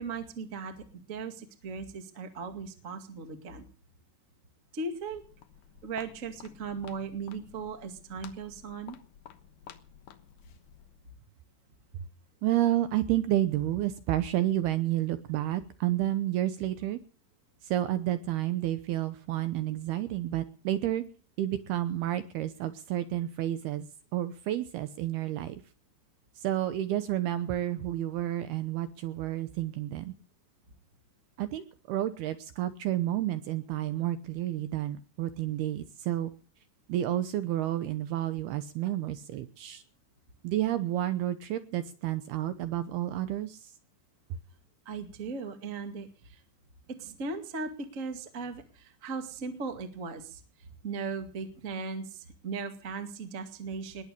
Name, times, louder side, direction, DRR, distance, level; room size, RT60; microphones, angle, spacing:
voice 1, 0.0-3.6 4.7-5.2 5.8-9.0 44.8-46.4 47.0-50.4 50.8-54.0, right 4 dB, 60° right, 7 dB, 0.8 m, -38 dB
Walk footsteps, 5.0-11.1, left 9 dB, 70° left, 2.0 m, -53 dB
voice 2, 12.4-17.0 17.6-21.0 21.4-23.9 24.1-25.6 26.4-30.1 31.4-36.3 36.9-39.8 40.4-43.7, right 13 dB, 75° right, 11 dB, 2.4 m, -30 dB
20.5 x 8.1 x 8.4 m, 0.40 s
omnidirectional pair, 5.5 m